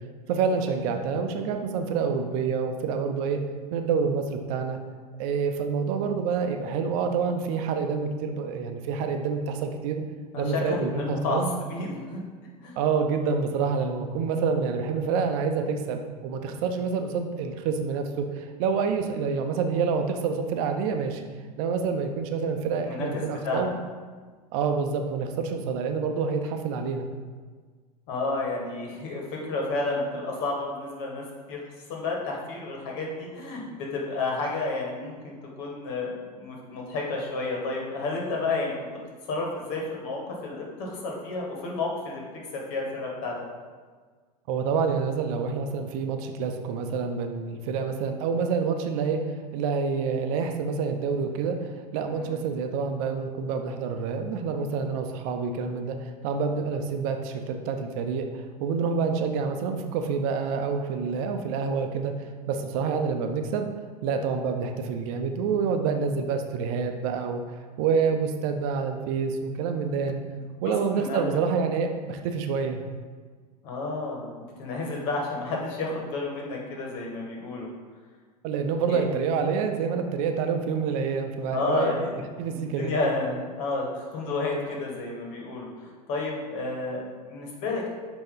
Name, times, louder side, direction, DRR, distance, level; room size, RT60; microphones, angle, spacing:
voice 1, 0.3-3.4 3.7-4.8 5.2-10.0 10.4-11.5 12.8-21.2 21.6-23.7 24.5-27.1 44.5-49.2 49.5-62.1 62.5-63.7 64.0-67.4 67.8-70.2 70.6-72.8 78.4-82.0 82.4-83.0, right 5 dB, 55° right, 5 dB, 0.7 m, -27 dB
voice 2, 10.3-11.4 11.7-12.2 12.6-12.8 22.8-23.6 28.1-31.6 31.9-38.7 39.3-42.2 42.5-43.4 52.0-52.4 70.7-71.2 73.6-77.7 78.9-79.1 81.5-87.9, left 3 dB, 55° left, -1 dB, 1.7 m, -31 dB
8.5 x 3.0 x 3.9 m, 1.5 s
hypercardioid pair, 90°, 21 cm